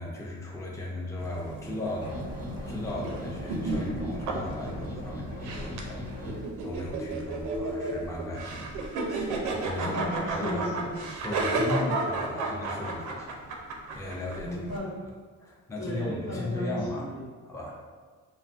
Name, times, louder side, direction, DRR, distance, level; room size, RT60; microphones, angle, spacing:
voice 1, 0.0-2.3 2.7-9.9 10.3-10.7 11.2-14.6 15.4-17.1 17.4-17.8, left 1 dB, 10° left, -2 dB, 0.4 m, -37 dB
sound 1, 1.2-14.8, right 2 dB, 90° right, 0.5 m, -33 dB
sound 2, 2.0-6.4, left 1 dB, 55° left, 1.0 m, -38 dB
voice 2, 9.8-10.9 14.4-14.9 15.8-17.3, equal, 85° left, -7 dB, 1.1 m, -34 dB
2.6 x 2.4 x 2.4 m, 1.5 s
cardioid pair, 90°, 30 cm